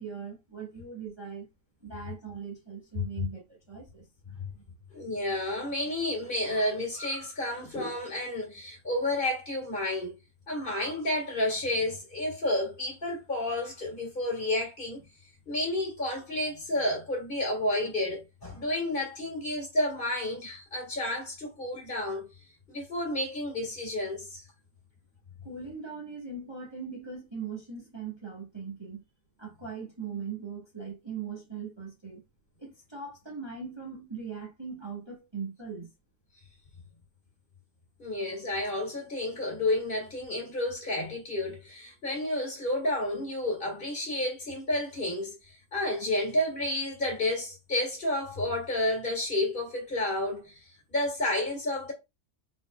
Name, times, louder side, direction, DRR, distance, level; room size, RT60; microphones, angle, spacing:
voice 1, 0.0-1.5 1.8-4.0 25.4-29.0 29.4-32.2 32.6-35.9, right 5 dB, 20° right, 1.2 m, -40 dB
voice 2, 4.9-10.2 10.5-15.0 15.5-22.3 22.7-24.4 38.0-51.9, left 1 dB, 35° left, 2.0 m, -31 dB
4.2 x 3.9 x 2.3 m
omnidirectional pair, 1.6 m